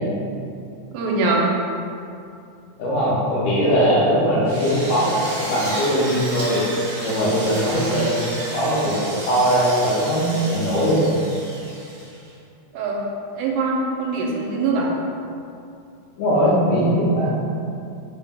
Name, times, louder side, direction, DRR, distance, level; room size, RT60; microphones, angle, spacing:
voice 1, 0.9-1.5 12.7-13.0 13.4-14.9, right 3 dB, 85° right, -2 dB, 2.1 m, -22 dB
voice 2, 2.8-6.6 7.0-11.1 16.2-17.3, equal, 80° left, -6 dB, 1.7 m, -20 dB
Drill, 4.4-12.3, right 1 dB, 60° right, 2.0 m, -33 dB
4.7 x 2.1 x 3.3 m, 2.5 s
omnidirectional pair, 3.5 m